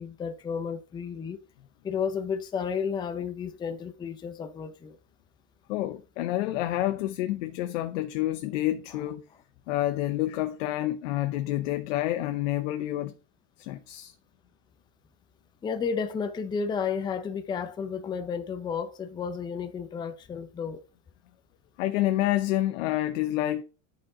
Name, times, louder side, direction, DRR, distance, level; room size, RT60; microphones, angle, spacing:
voice 1, 0.0-1.4 1.8-5.0 15.6-20.8, left 6 dB, 10° left, 0.5 m, -32 dB
voice 2, 5.7-9.2 9.7-13.1 13.6-14.1 21.8-23.6, left 14 dB, 85° left, 0.8 m, -28 dB
10.5 x 4.5 x 3.7 m
supercardioid pair, 155°, 36 cm